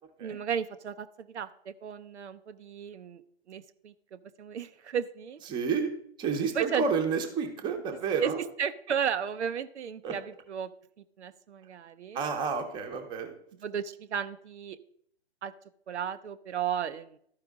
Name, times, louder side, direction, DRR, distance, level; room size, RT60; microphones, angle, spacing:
voice 1, 0.2-3.2 3.5-5.4 6.5-6.8 8.2-8.3 8.6-10.7 11.0-12.2 13.6-14.8 15.4-15.5 15.9-17.2, right 8 dB, 90° right, 10 dB, 0.6 m, -34 dB
voice 2, 5.5-5.9 6.2-8.4 10.0-10.1 12.1-13.4, right 5 dB, 15° right, 4 dB, 0.8 m, -30 dB
12.5 x 4.9 x 3.5 m, 0.66 s
hypercardioid pair, 140°, 33 cm